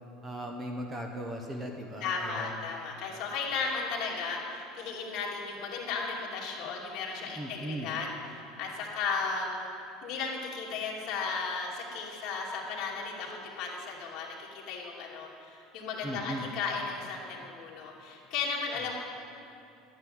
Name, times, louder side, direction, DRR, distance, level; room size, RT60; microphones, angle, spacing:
voice 1, 0.2-2.7 7.4-7.9 16.0-16.5, right 1 dB, 15° right, 2 dB, 0.9 m, -38 dB
voice 2, 2.0-9.7 10.0-18.9, left 4 dB, 45° left, -3 dB, 2.6 m, -35 dB
12.0 x 9.3 x 9.3 m, 2.7 s
cardioid pair, 170°, 0 cm